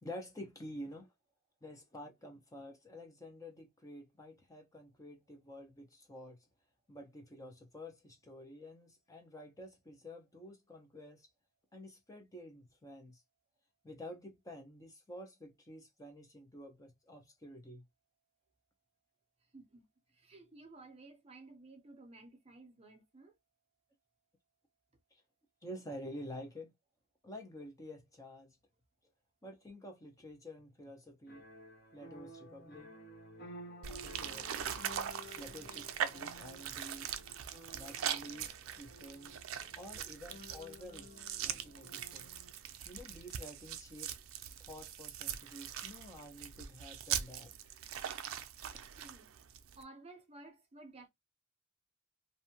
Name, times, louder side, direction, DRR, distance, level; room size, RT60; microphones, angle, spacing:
voice 1, 0.0-1.1 1.6-6.4 6.9-11.3 11.7-13.2 13.8-17.8 25.1-25.2 25.6-26.7 27.2-28.6 29.4-31.4 31.9-32.9 33.9-34.5 35.4-37.1 37.7-39.4 39.8-42.3 42.8-44.1 44.6-47.5 48.6-48.8, left 1 dB, 15° left, 0.5 m, -50 dB
voice 2, 19.5-19.9 20.1-23.4 48.9-49.3 49.8-51.1, right 2 dB, 30° right, 0.6 m, -55 dB
sound 1, 31.3-42.5, equal, 50° left, 0.8 m, -54 dB
sound 2, 33.8-49.8, right 9 dB, 75° right, 0.4 m, -41 dB
2.6 x 2.1 x 2.7 m
head